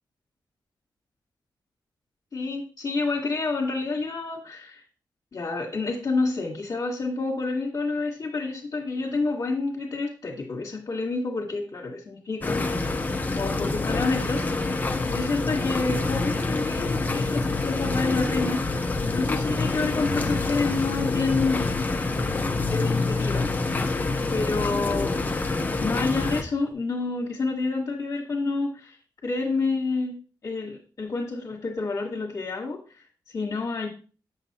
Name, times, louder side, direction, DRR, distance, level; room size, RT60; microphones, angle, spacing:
voice 1, 2.3-4.8 5.3-12.7 13.3-18.6 19.0-21.7 22.7-23.6 24.3-25.4 25.8-33.9, left 3 dB, 45° left, -4 dB, 1.4 m, -29 dB
sound 1, 12.4-26.4, left 2 dB, 20° left, 0.7 m, -27 dB
Motorcycle, 14.0-26.7, left 5 dB, 70° left, 0.8 m, -35 dB
7.2 x 7.0 x 2.9 m, 0.36 s
wide cardioid pair, 145°, 8 cm